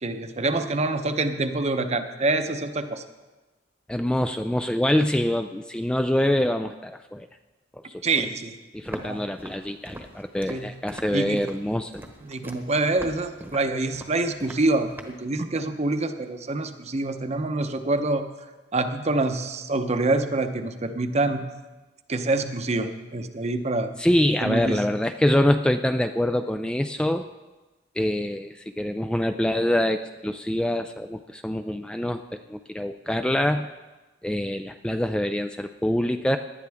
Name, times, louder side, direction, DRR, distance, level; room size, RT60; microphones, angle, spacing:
voice 1, 0.0-3.0 8.0-8.5 9.0-9.2 10.5-10.7 11.1-11.4 12.2-18.2 18.7-21.4 22.1-23.9 24.4-24.8, right 2 dB, 35° right, 8 dB, 0.8 m, -26 dB
voice 2, 3.9-7.3 7.9-8.0 8.7-11.9 24.0-27.3 28.0-32.2 32.5-33.7 34.2-36.4, left 1 dB, 5° left, 7 dB, 0.3 m, -25 dB
Walk footsteps, 8.8-15.2, right 1 dB, 10° right, 1.1 m, -42 dB
18.5 x 11.0 x 3.5 m, 1.2 s
head